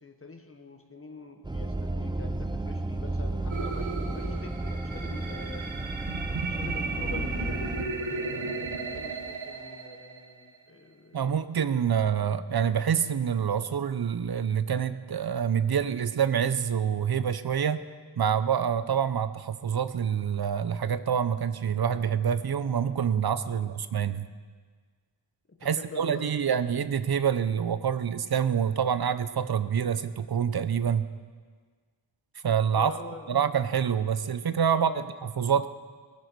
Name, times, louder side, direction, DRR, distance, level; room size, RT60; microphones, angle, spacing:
voice 1, 0.0-5.7 6.5-11.2 11.8-11.9 23.5-23.7 25.5-26.6 32.7-33.4 34.7-35.1, left 3 dB, 25° left, 5 dB, 1.4 m, -45 dB
sound 1, 1.4-7.8, right 2 dB, 10° right, 0.5 m, -32 dB
sound 2, 3.5-10.6, right 3 dB, 65° right, 1.4 m, -35 dB
voice 2, 11.1-17.8 18.2-24.3 25.6-31.1 32.4-32.9 33.3-35.7, right 8 dB, 50° right, 13 dB, 0.7 m, -26 dB
20.0 x 12.0 x 4.7 m, 1.5 s
wide cardioid pair, 130°, 50 cm